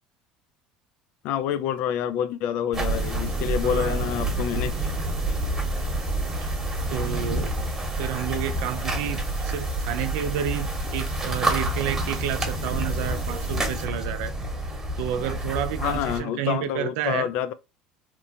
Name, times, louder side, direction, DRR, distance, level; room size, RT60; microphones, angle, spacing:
voice 1, 1.2-4.9 15.8-17.5, left 10 dB, 65° left, 0.3 m, -27 dB
sound 1, 2.7-16.2, right 1 dB, 20° right, 1.0 m, -28 dB
voice 2, 3.6-4.0 6.4-6.5 6.9-7.5 7.9-14.3 15.0-17.3, right 10 dB, 75° right, 0.4 m, -30 dB
2.9 x 2.1 x 2.7 m
supercardioid pair, 95°, 2 cm